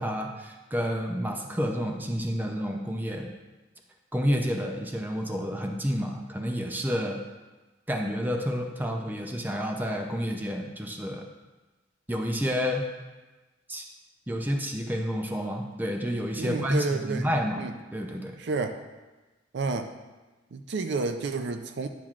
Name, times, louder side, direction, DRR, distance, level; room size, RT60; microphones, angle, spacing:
voice 1, 0.0-3.3 4.1-7.2 7.9-11.3 12.1-12.9 13.7-13.9 14.3-18.4, equal, 10° right, 2 dB, 0.5 m, -30 dB
voice 2, 16.4-17.3 17.6-17.7 18.4-18.8 19.5-19.9 20.5-21.9, right 3 dB, 60° right, 7 dB, 0.4 m, -30 dB
10.5 x 5.8 x 2.5 m, 1.2 s
head